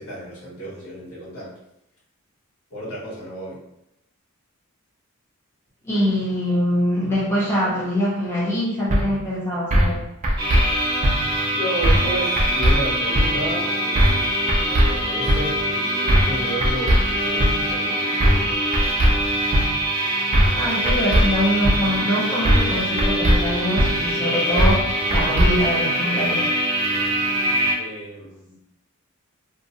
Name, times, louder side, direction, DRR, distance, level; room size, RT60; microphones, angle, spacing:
voice 1, 0.0-1.5 2.7-3.6 11.5-14.2 14.6-18.5 27.7-28.5, right 1 dB, 80° left, -7 dB, 1.2 m, -32 dB
voice 2, 5.8-10.0 20.6-24.9 25.1-26.5, equal, 10° left, -8 dB, 0.6 m, -23 dB
sound 1, 8.9-9.0 9.7-10.0 10.2-10.6 11.0-11.1 11.8-12.1 12.4-12.7 13.1-13.3 13.9-14.2 14.5-14.9 15.3-15.4 16.1-16.3 16.6-17.0 17.4-17.5 18.2-18.5 18.7-19.1 19.5-19.6 20.3-20.6 20.9-21.2 21.6-21.8 22.4-22.7 23.0-23.4 23.8-23.9 24.6-24.8 25.1-25.5, equal, 30° right, 0.4 m, -17 dB
sound 2, 10.4-27.7, equal, 65° right, 0.8 m, -24 dB
2.7 x 2.0 x 2.7 m, 0.82 s
head